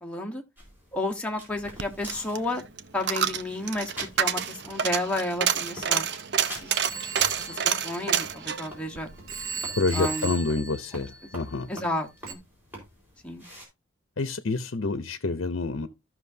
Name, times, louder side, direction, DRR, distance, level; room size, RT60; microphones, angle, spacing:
voice 1, 0.0-0.4 0.9-2.6 2.9-6.1 6.4-6.8 7.4-9.1 9.9-10.3 11.7-12.4 13.2-13.4, left 1 dB, 5° left, 1.2 m, -31 dB
sound 1, 0.6-13.7, equal, 10° right, 4.4 m, -47 dB
Coin (dropping), 1.6-10.0 10.3-10.4, right 8 dB, 55° right, 0.6 m, -28 dB
Telephone, 6.7-8.8 9.3-11.6 12.3-12.4, right 5 dB, 90° right, 1.4 m, -38 dB
voice 2, 9.7-11.7 14.2-15.9, left 3 dB, 65° left, 0.7 m, -28 dB
14.5 x 6.0 x 2.7 m
head